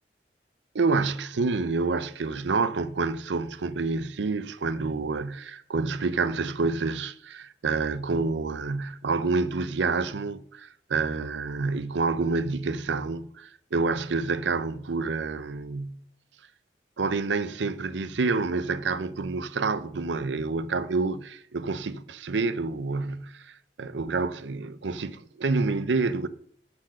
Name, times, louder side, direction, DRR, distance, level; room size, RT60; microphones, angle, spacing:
voice 1, 0.7-16.0 17.0-23.5 23.8-26.3, right 4 dB, 85° right, 0.6 m, -28 dB
11.5 x 4.5 x 6.2 m
head